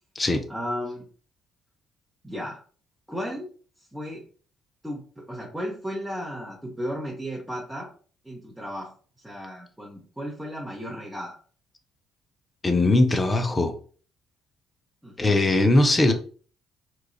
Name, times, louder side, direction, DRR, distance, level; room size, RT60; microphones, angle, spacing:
voice 1, 0.5-1.0 2.2-2.6 3.1-3.5 3.9-4.2 4.8-7.9 8.2-8.9 9.2-11.4 15.0-15.4, equal, 5° right, -4 dB, 0.8 m, -34 dB
voice 2, 12.6-13.7 15.2-16.1, left 2 dB, 25° left, 5 dB, 0.5 m, -20 dB
3.0 x 2.3 x 2.3 m, 0.42 s
figure-of-eight pair, 45°, 0 cm